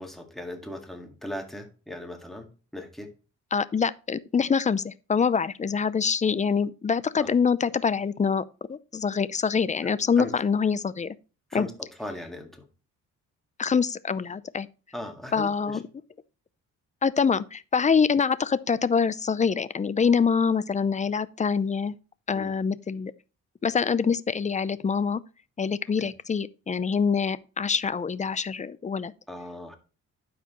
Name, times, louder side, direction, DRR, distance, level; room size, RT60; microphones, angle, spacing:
voice 1, 0.0-2.5 2.7-3.1 7.2-7.3 10.2-10.3 11.5-11.7 12.0-12.6 14.9-15.8 22.3-22.5 29.3-29.8, left 1 dB, ahead, 1.9 m, -38 dB
voice 2, 3.5-11.2 11.5-11.7 13.6-14.7 15.3-15.8 17.0-22.0 22.3-23.1 23.6-25.2 25.6-29.1, left 6 dB, 25° left, 0.5 m, -25 dB
12.0 x 4.8 x 3.0 m
cardioid pair, 90°, 30 cm